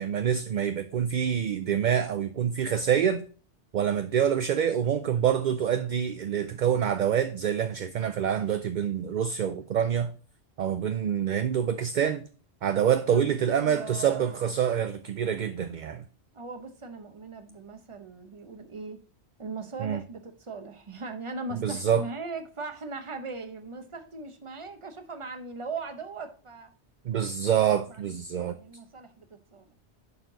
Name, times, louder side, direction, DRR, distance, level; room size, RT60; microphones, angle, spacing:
voice 1, 0.0-3.2 3.7-10.1 10.6-12.2 12.6-16.0 19.8-20.0 21.6-22.1 27.1-28.6, right 8 dB, 55° right, 0.5 m, -26 dB
voice 2, 13.1-14.5 16.3-19.0 19.4-26.7 27.6-29.7, right 4 dB, 30° right, 0.8 m, -39 dB
10.5 x 4.4 x 3.8 m
omnidirectional pair, 1.1 m